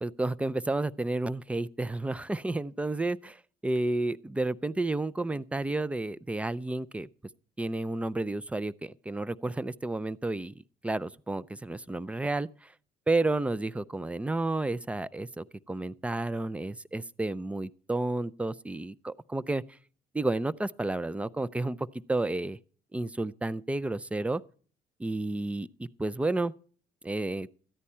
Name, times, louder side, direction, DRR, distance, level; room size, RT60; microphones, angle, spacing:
voice 1, 0.0-7.1 7.6-10.5 10.8-12.7 13.1-19.6 20.1-22.6 22.9-24.4 25.0-26.5 27.0-27.5, right 2 dB, 5° right, 0.4 m, -31 dB
13.5 x 9.8 x 4.3 m
cardioid pair, 110°, 17 cm